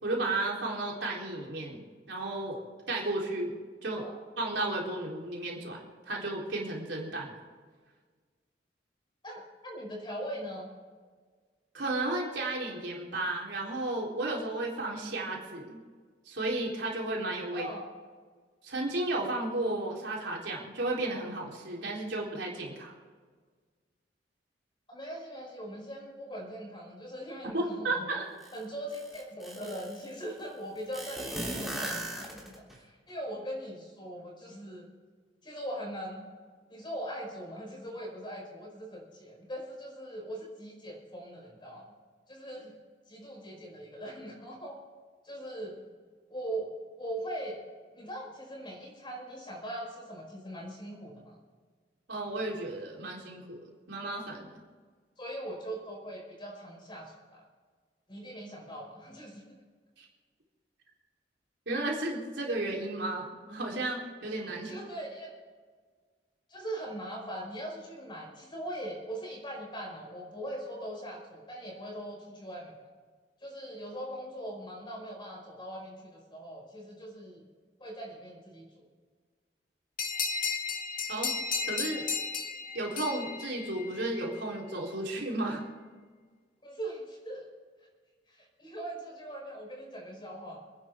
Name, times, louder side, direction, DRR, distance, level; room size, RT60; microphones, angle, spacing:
voice 1, 0.0-1.8 2.1-2.6 2.9-3.5 3.8-4.1 4.4-5.8 6.1-7.4 11.7-15.8 16.3-17.7 18.6-22.9 27.5-28.3 52.1-54.6 61.7-64.7 81.1-81.3 81.7-82.1 82.7-85.6, right 2 dB, 80° right, -2 dB, 3.8 m, -33 dB
voice 2, 9.2-10.7 17.5-17.8 24.9-28.1 28.5-34.9 35.4-36.3 36.7-41.9 42.3-42.7 43.1-44.8 45.2-45.8 46.3-46.7 47.0-47.6 47.9-51.4 55.2-57.4 58.1-59.4 64.5-65.3 66.5-72.7 73.4-77.4 77.8-78.9 86.6-87.5 88.3-90.6, right 1 dB, 25° left, -1 dB, 5.1 m, -41 dB
sound 1, 28.4-28.5 28.9-30.0 30.9-32.7, right 1 dB, ahead, 3.3 m, -37 dB
sound 2, 80.0-84.2, left 5 dB, 50° left, 1.6 m, -34 dB
28.0 x 10.5 x 3.7 m, 1.6 s
head